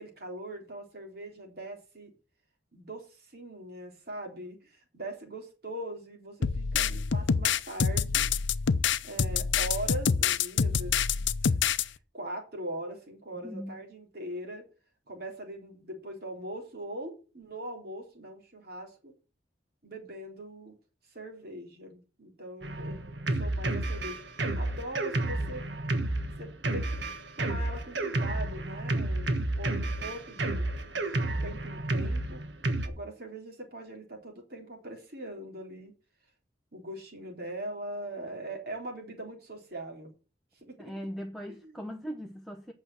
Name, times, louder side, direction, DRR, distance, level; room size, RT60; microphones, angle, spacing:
voice 1, 0.0-2.1 2.7-8.3 9.0-11.5 11.8-14.6 15.1-19.1 19.8-20.7 21.1-23.0 23.3-25.7 26.4-27.0 27.4-32.4 32.8-35.9 36.7-40.1 40.5-40.9 41.5-41.8, right 1 dB, 55° right, 3.8 m, -41 dB
sound 1, 6.4-11.8, left 6 dB, 75° left, 0.6 m, -26 dB
voice 2, 13.3-13.8 40.8-42.7, equal, ahead, 0.9 m, -39 dB
Drum kit, 22.6-32.9, right 2 dB, 70° right, 1.5 m, -31 dB
8.7 x 6.3 x 7.7 m
head